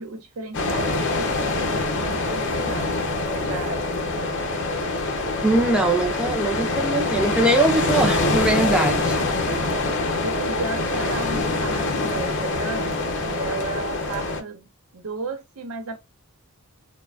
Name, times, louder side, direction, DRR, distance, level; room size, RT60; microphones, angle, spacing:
voice 1, 0.0-3.0 3.3-4.3 9.2-9.3 10.2-16.0, right 3 dB, 70° right, 0.6 m, -34 dB
sound 1, 0.5-14.4, left 2 dB, 55° left, 0.6 m, -25 dB
voice 2, 5.4-9.2, right 2 dB, 5° right, 0.4 m, -21 dB
3.1 x 2.2 x 2.3 m
head